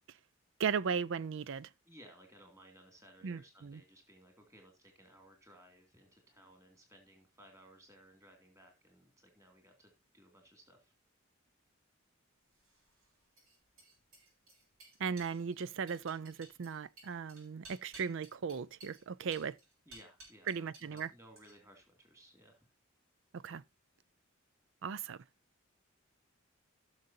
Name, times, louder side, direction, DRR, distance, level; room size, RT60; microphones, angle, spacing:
voice 1, 0.6-1.7 3.2-3.8 15.0-19.6 20.5-21.1 23.3-23.6 24.8-25.2, right 6 dB, 65° right, 0.5 m, -37 dB
voice 2, 1.9-9.9 10.1-10.9 19.9-22.7, right 1 dB, 15° right, 2.5 m, -60 dB
sound 1, 12.5-21.1 21.4-21.8, right 2 dB, 85° right, 6.0 m, -57 dB
17.0 x 6.5 x 2.7 m
head